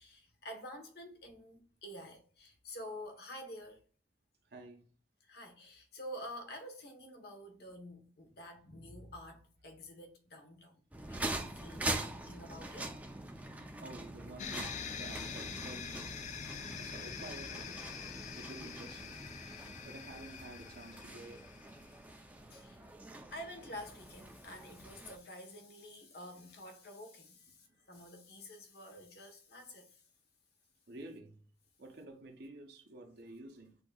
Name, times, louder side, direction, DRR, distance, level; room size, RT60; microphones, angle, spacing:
voice 1, 0.0-3.8 5.2-10.8 11.1-12.9 21.9-22.0 22.5-22.9 23.3-30.0, equal, 65° left, 1.1 m, -49 dB
voice 2, 4.5-4.9 13.8-16.2 16.8-17.8 18.3-19.2 19.8-21.5 30.9-31.4 31.8-33.8, right 2 dB, 65° right, 0.8 m, -50 dB
sound 1, 10.9-25.2, right 2 dB, 10° right, 0.5 m, -44 dB
sound 2, 14.4-22.0, left 6 dB, 45° left, 0.4 m, -45 dB
7.9 x 2.8 x 2.3 m
head